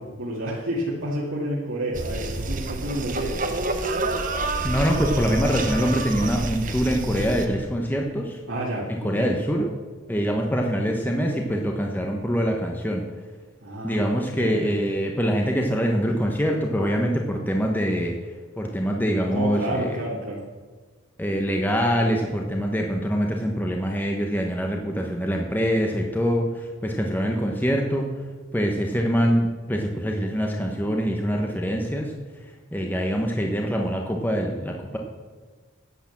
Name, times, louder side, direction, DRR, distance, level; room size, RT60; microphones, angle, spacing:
voice 1, 0.0-3.4 8.5-9.3 13.6-14.0 14.4-14.7 19.3-20.4, right 1 dB, 75° right, -6 dB, 2.2 m, -30 dB
sound 1, 1.9-7.5, right 2 dB, 40° right, 0.9 m, -28 dB
voice 2, 4.6-8.4 8.9-9.7 10.1-13.0 13.8-20.0 21.2-28.3 28.5-35.0, equal, 10° left, 1 dB, 0.9 m, -24 dB
10.5 x 8.4 x 7.1 m, 1.4 s
head